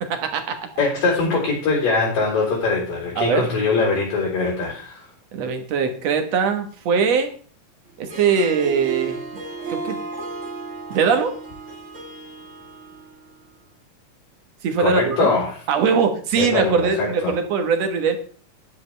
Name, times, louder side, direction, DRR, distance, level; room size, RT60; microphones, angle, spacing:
voice 1, 0.0-0.6 3.2-3.5 5.3-7.3 8.0-9.2 9.7-10.0 10.9-11.4 14.6-15.3 15.7-18.2, right 6 dB, 60° right, 7 dB, 2.1 m, -21 dB
voice 2, 0.8-5.1 14.8-15.6 16.4-17.3, left 3 dB, 75° left, -3 dB, 5.5 m, -22 dB
Harp, 8.0-13.4, right 4 dB, 40° right, 1.1 m, -34 dB
12.5 x 10.5 x 3.3 m, 0.44 s
omnidirectional pair, 4.0 m